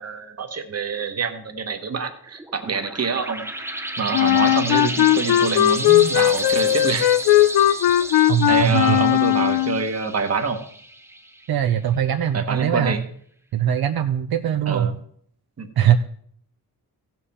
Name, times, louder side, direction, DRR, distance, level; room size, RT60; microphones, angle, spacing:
voice 1, 0.0-3.4 4.0-7.1 8.5-10.6 12.3-13.0 14.7-14.9 15.6-15.7, right 5 dB, 40° right, 7 dB, 1.2 m, -26 dB
sound 1, 2.4-11.6, right 1 dB, 5° right, 0.7 m, -32 dB
Wind instrument woodwind instrument, 4.1-9.9, left 13 dB, 85° left, 0.5 m, -18 dB
voice 2, 8.3-9.0 11.5-13.0 13.5-14.9 15.8-16.0, right 10 dB, 70° right, 7 dB, 0.7 m, -21 dB
15.5 x 7.4 x 4.3 m, 0.62 s
wide cardioid pair, 150°, 38 cm